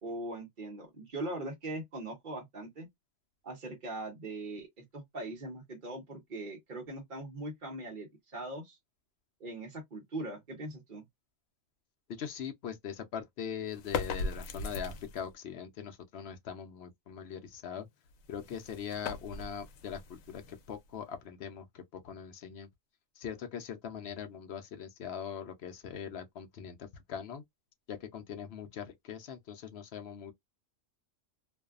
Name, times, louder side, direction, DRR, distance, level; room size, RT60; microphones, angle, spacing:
voice 1, 0.0-2.9 3.4-4.7 4.9-8.8 9.4-11.0, right 2 dB, 45° right, 0.9 m, -40 dB
voice 2, 12.1-17.9 18.3-20.0 20.3-22.7 23.2-27.4 27.9-30.3, left 8 dB, 65° left, 0.7 m, -41 dB
sound 1, 13.7-15.3 18.1-21.0, left 3 dB, 85° left, 1.0 m, -39 dB
2.6 x 2.3 x 2.3 m
omnidirectional pair, 1.4 m